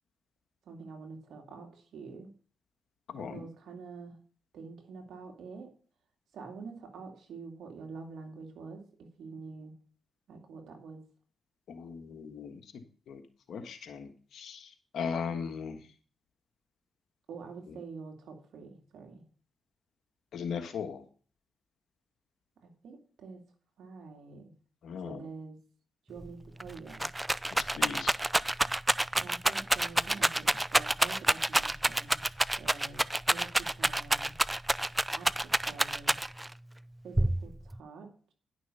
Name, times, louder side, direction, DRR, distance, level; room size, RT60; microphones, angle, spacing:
voice 1, 0.6-2.3 3.2-4.2 4.5-5.7 6.3-9.7 10.3-11.0 17.3-19.2 22.6-23.4 23.8-24.5 25.0-25.6 26.1-27.1 29.2-32.2 32.6-34.3 35.1-36.2 37.0-38.3, right 4 dB, 80° right, 2 dB, 2.5 m, -46 dB
voice 2, 3.1-3.4 11.7-12.7 13.1-13.2 13.5-15.9 20.3-21.0 24.8-25.2 27.5-28.1, left 6 dB, 75° left, 7 dB, 1.5 m, -38 dB
Rattle, 26.2-26.3 26.6-36.5 37.2-37.8, right 1 dB, 15° right, 0.4 m, -28 dB
11.0 x 6.3 x 5.5 m, 0.42 s
supercardioid pair, 50°, 0 cm